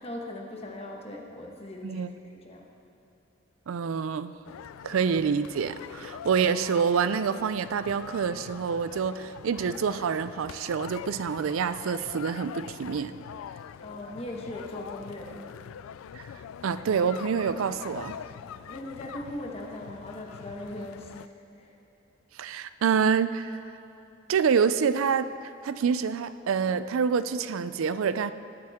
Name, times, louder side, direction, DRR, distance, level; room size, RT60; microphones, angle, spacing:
voice 1, 0.0-2.7 5.9-6.1 13.8-15.6 18.4-21.8, left 1 dB, 30° left, 0 dB, 1.3 m, -40 dB
voice 2, 3.7-4.3 4.8-13.1 16.1-16.2 16.6-18.2 22.4-23.5 24.3-25.3 25.6-28.3, right 6 dB, 80° right, 13 dB, 0.4 m, -27 dB
sound 1, 4.4-21.3, left 8 dB, 80° left, 0.3 m, -43 dB
19.5 x 8.7 x 3.6 m, 2.8 s
head